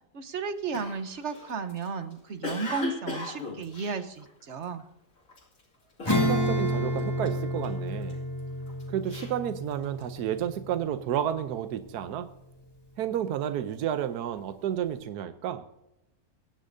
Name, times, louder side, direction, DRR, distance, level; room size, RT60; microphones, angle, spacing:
voice 1, 0.1-4.8, right 5 dB, 50° right, 10 dB, 1.1 m, -34 dB
Cough, 0.7-4.8 5.3-5.6 6.0-6.7 7.0-8.1 8.7-10.2, left 2 dB, 55° left, 2.8 m, -38 dB
Acoustic guitar / Strum, 6.0-12.1, equal, 15° left, 2.3 m, -30 dB
voice 2, 6.2-8.2 8.9-12.3 13.0-15.6, right 10 dB, 85° right, 10 dB, 1.3 m, -31 dB
24.0 x 10.0 x 2.7 m, 0.89 s
omnidirectional pair, 1.7 m